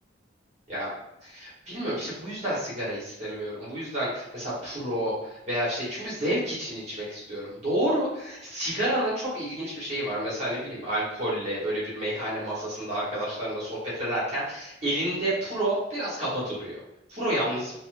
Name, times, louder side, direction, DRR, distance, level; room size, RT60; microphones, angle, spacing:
voice 1, 1.2-16.8 17.1-17.7, right 1 dB, 35° right, -8 dB, 1.1 m, -30 dB
4.1 x 2.1 x 2.5 m, 0.87 s
head